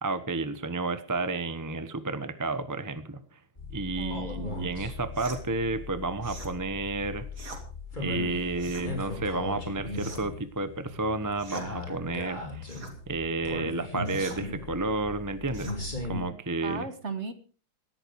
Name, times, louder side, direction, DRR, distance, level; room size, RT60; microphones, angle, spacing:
voice 1, 0.0-3.4 3.7-7.3 8.0-12.7 13.1-15.7 16.1-16.9, right 3 dB, 15° right, 11 dB, 0.8 m, -31 dB
sound 1, 3.6-16.2, left 2 dB, 25° left, 4.6 m, -38 dB
voice 2, 4.0-4.7 16.6-17.3, right 4 dB, 40° right, 11 dB, 1.6 m, -37 dB
sound 2, 5.1-5.4 6.2-6.5 7.3-7.6 8.5-8.9 9.9-10.4 11.4-11.7 12.7-13.0 14.1-14.4 15.5-15.8, right 3 dB, 55° right, 3.7 m, -43 dB
18.0 x 13.5 x 4.8 m, 0.39 s
omnidirectional pair, 2.1 m